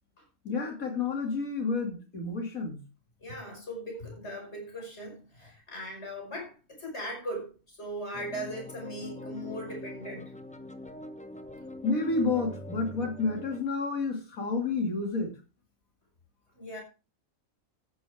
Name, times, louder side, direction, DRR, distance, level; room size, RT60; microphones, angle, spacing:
voice 1, 0.4-2.8 11.8-15.3, left 4 dB, 80° left, 3.1 m, -30 dB
voice 2, 3.2-10.3 16.5-16.8, equal, 50° left, 5.9 m, -39 dB
sound 1, 8.1-13.6, left 1 dB, 5° left, 0.7 m, -43 dB
14.0 x 10.5 x 3.6 m
omnidirectional pair, 1.4 m